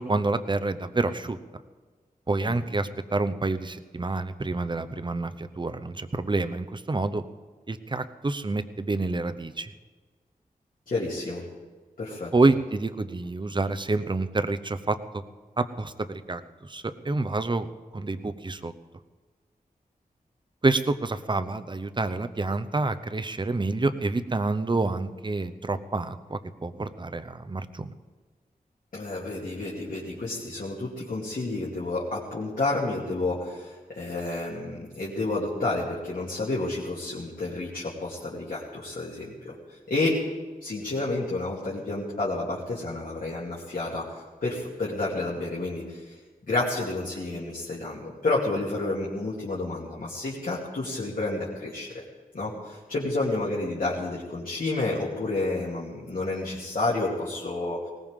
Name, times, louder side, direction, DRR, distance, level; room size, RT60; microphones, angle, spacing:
voice 1, 0.0-1.4 2.3-7.2 7.7-9.7 12.3-15.2 15.6-18.7 20.6-27.9, right 3 dB, 30° right, 10 dB, 0.8 m, -28 dB
voice 2, 10.9-11.4 12.0-12.3 28.9-39.5 39.9-40.2 40.6-44.1 44.4-46.2 46.5-51.9 52.3-57.8, left 2 dB, 65° left, -5 dB, 2.6 m, -30 dB
19.5 x 19.0 x 3.7 m, 1.4 s
wide cardioid pair, 80°, 15 cm